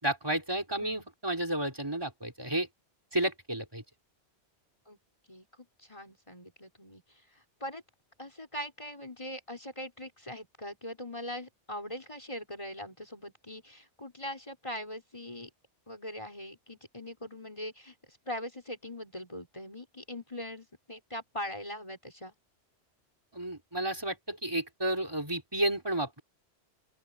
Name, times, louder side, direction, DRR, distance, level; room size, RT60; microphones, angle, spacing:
voice 1, 0.0-2.7 3.1-3.8 23.3-26.2, right 1 dB, 20° right, 4.5 m, -32 dB
voice 2, 5.3-7.0 7.6-7.8 8.2-15.5 15.9-22.3, left 1 dB, 25° left, 5.6 m, -41 dB
open air
omnidirectional pair, 1.1 m